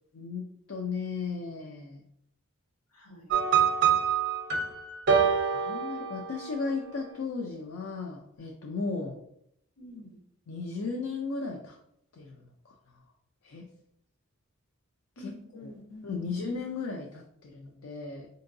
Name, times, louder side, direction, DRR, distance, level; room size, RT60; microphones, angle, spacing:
voice 1, 0.1-2.0 5.5-9.2 10.5-11.8 12.1-12.7 13.4-13.7 15.2-15.7 16.0-18.3, left 4 dB, 70° left, 1 dB, 0.4 m, -36 dB
voice 2, 2.9-3.3 9.8-10.2 15.2-16.5, left 2 dB, 90° left, -1 dB, 1.0 m, -47 dB
sound 1, 3.3-6.7, right 7 dB, 50° right, 0.6 m, -26 dB
4.4 x 2.8 x 2.6 m, 0.74 s
head